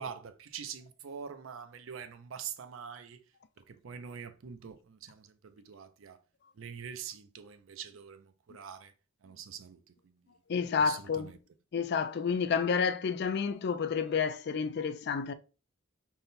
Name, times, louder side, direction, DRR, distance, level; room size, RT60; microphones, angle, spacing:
voice 1, 0.0-3.2 3.7-6.2 6.6-8.9 9.2-9.8 10.8-11.4, right 7 dB, 85° right, 0.5 m, -44 dB
voice 2, 10.5-11.3 11.7-15.3, left 6 dB, 55° left, 0.4 m, -30 dB
3.6 x 2.1 x 4.0 m
head